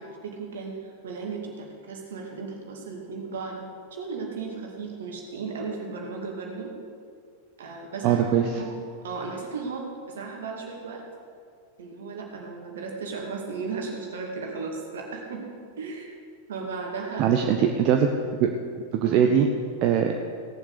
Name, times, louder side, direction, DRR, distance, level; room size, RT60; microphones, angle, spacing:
voice 1, 0.0-3.6 3.9-6.7 7.6-11.0 11.8-15.5 15.8-16.2 16.5-17.4 19.1-19.3, right 4 dB, 60° right, 1 dB, 2.3 m, -35 dB
voice 2, 8.0-8.4 17.2-18.1 18.4-18.5 18.9-19.5 19.8-20.2, right 8 dB, 40° right, 4 dB, 0.8 m, -21 dB
17.5 x 7.2 x 6.7 m, 2.2 s
figure-of-eight pair, 90°, 0 cm